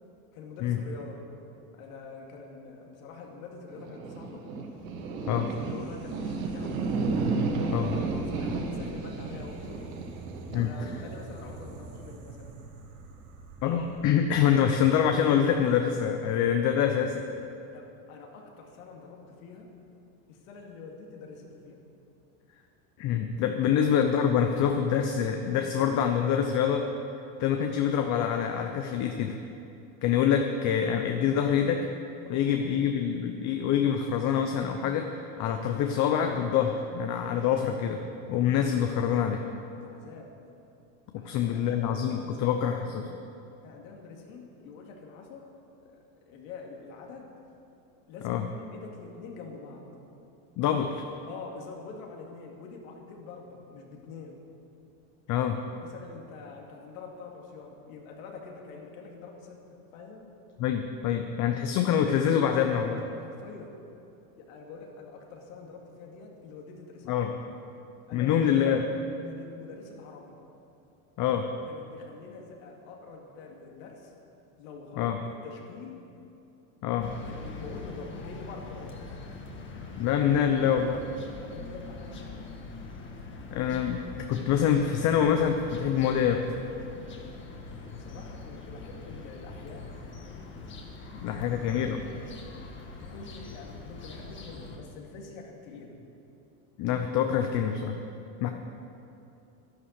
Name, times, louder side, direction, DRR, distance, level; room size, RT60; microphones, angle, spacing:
voice 1, 0.3-1.2 1.7-4.5 5.2-6.9 8.1-9.9 10.5-12.6 17.7-19.7 20.3-21.8 23.6-23.8 32.2-32.9 39.8-40.3 41.2-42.9 43.6-45.5 45.8-47.3 48.1-49.9 51.3-54.4 55.8-60.3 63.2-63.8 64.3-67.1 68.1-68.6 69.2-70.4 71.7-74.1 74.6-76.0 77.2-79.0 81.3-82.4 87.8-89.9 91.3-92.0 93.0-96.0 98.4-98.5, left 4 dB, 80° left, 0 dB, 2.5 m, -46 dB
sound 1, 3.7-14.1, right 3 dB, 85° right, 1.9 m, -33 dB
voice 2, 13.6-17.2 23.0-26.9 27.4-29.4 30.0-31.9 32.3-38.0 38.3-39.4 41.1-43.0 48.2-48.5 50.6-51.0 55.3-55.6 60.6-63.0 67.1-67.3 68.1-68.9 71.2-71.5 75.0-75.2 76.8-77.1 80.0-81.0 83.5-86.4 91.1-92.0 96.8-98.0 98.4-98.5, left 8 dB, 45° left, 5 dB, 0.9 m, -26 dB
sound 2, 77.0-94.8, left 3 dB, 30° left, 1.7 m, -43 dB
11.5 x 11.0 x 6.6 m, 2.7 s
supercardioid pair, 140°, 40 cm